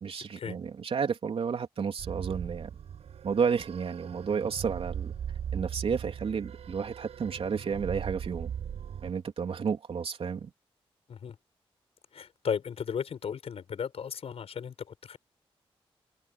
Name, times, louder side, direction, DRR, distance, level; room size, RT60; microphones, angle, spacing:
voice 1, 0.0-2.7 3.2-5.1 5.5-8.5 9.0-10.5, right 6 dB, 65° right, 3.3 m, -31 dB
sound 1, 2.0-9.1, right 8 dB, 85° right, 6.8 m, -39 dB
voice 2, 12.1-15.2, left 7 dB, 75° left, 6.4 m, -35 dB
cardioid pair, 60°, 10 cm